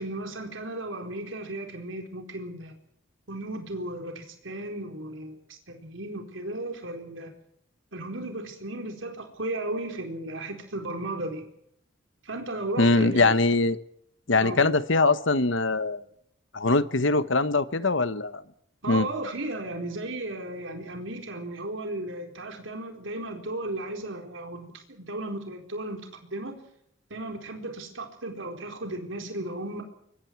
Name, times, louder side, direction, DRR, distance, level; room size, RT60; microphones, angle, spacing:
voice 1, 0.0-2.8 3.3-7.3 7.9-11.4 12.2-13.3 14.4-14.7 18.8-26.5 27.1-29.8, right 2 dB, 75° right, 4 dB, 4.3 m, -35 dB
voice 2, 12.8-13.8 14.3-16.0 16.5-18.4 18.9-19.1, left 3 dB, 70° left, 13 dB, 1.2 m, -22 dB
25.5 x 23.5 x 4.7 m, 0.72 s
head